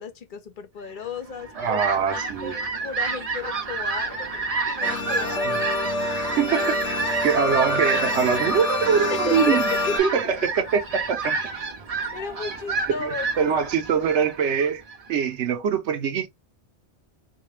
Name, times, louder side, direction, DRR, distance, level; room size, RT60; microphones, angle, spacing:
voice 1, 0.0-1.8 2.1-5.6 9.1-10.2 12.1-13.6, left 5 dB, 55° left, 0.7 m, -34 dB
Fowl, 1.2-15.1, right 4 dB, 35° right, 0.8 m, -30 dB
voice 2, 1.6-2.5 5.4-5.6 6.4-9.6 10.0-10.4 10.7-10.8 11.1-11.4 13.0-14.8 15.1-16.3, right 7 dB, 90° right, 1.1 m, -23 dB
sound 1, 4.8-10.0, left 2 dB, 70° left, 1.5 m, -27 dB
4.0 x 2.2 x 3.3 m
omnidirectional pair, 1.2 m